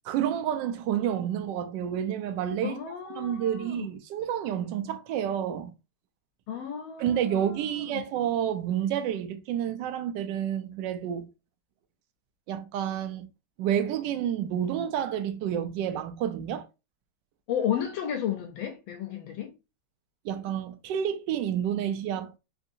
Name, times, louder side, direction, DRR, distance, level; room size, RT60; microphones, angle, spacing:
voice 1, 0.0-2.8 3.2-5.7 7.0-11.3 12.5-13.3 13.6-16.7 20.2-22.3, right 9 dB, 75° right, 1.1 m, -29 dB
voice 2, 2.6-3.9 6.5-8.0 17.5-19.5, left 9 dB, 85° left, 1.4 m, -33 dB
3.7 x 2.6 x 2.6 m
omnidirectional pair, 2.2 m